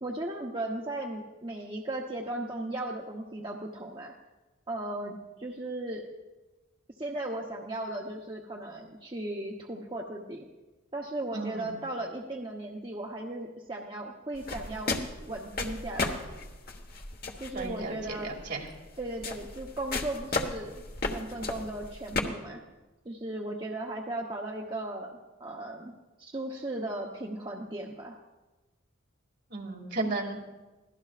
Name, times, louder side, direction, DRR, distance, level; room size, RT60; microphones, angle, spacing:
voice 1, 0.0-4.1 4.7-6.1 7.0-10.5 10.9-15.0 15.3-16.2 17.4-18.3 19.0-22.6 23.0-25.9 26.2-28.2, right 1 dB, 25° right, -1 dB, 0.9 m, -36 dB
voice 2, 11.3-11.7 17.5-18.7 29.5-30.5, right 3 dB, 50° right, 0 dB, 2.5 m, -34 dB
sound 1, 14.4-22.2, left 3 dB, 45° left, 1.3 m, -35 dB
24.0 x 17.0 x 2.5 m, 1.1 s
head